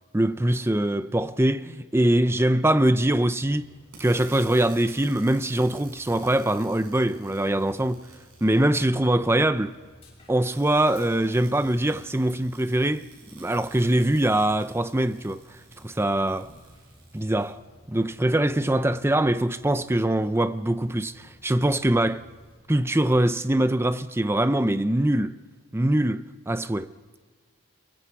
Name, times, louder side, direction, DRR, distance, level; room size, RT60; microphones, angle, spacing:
voice 1, 0.1-3.6 4.0-8.0 8.4-9.8 10.3-15.4 15.8-16.5 17.1-17.6 17.9-22.2 22.7-25.4 25.7-26.9, right 1 dB, 10° right, 0.6 m, -23 dB
Dog, 3.1-22.6, equal, 25° left, 7.5 m, -55 dB
sound 1, 3.9-8.7 10.4-17.5, right 5 dB, 80° right, 7.8 m, -52 dB
29.0 x 23.0 x 4.8 m
head